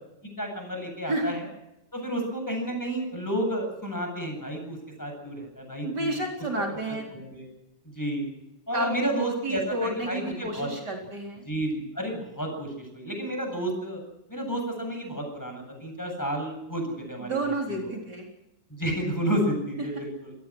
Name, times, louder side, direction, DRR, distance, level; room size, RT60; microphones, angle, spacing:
voice 1, 0.4-1.5 1.9-6.2 7.1-7.5 7.8-8.3 8.7-10.7 11.4-14.0 14.3-17.5 17.8-17.9 18.7-20.3, right 1 dB, 10° left, 3 dB, 8.0 m, -31 dB
voice 2, 5.8-7.1 8.7-11.4 17.2-18.3, right 1 dB, 60° right, 0 dB, 4.6 m, -30 dB
27.0 x 18.0 x 6.3 m, 0.87 s
omnidirectional pair, 2.1 m